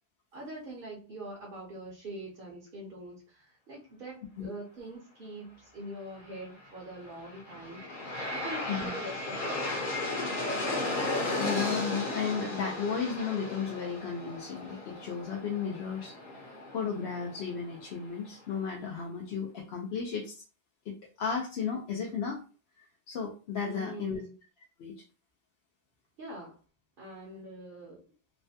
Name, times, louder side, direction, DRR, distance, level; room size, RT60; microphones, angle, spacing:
voice 1, 0.3-7.8 8.3-9.8 23.6-24.3 26.2-26.6 27.0-28.0, right 1 dB, 60° right, -3 dB, 1.0 m, -43 dB
Aircraft, 7.0-18.1, left 2 dB, 55° left, 1.0 m, -35 dB
voice 2, 11.4-20.4 20.9-22.4 22.8-24.2 24.8-25.0, left 6 dB, 80° left, 0 dB, 0.9 m, -34 dB
3.1 x 2.2 x 2.7 m, 0.35 s
omnidirectional pair, 1.1 m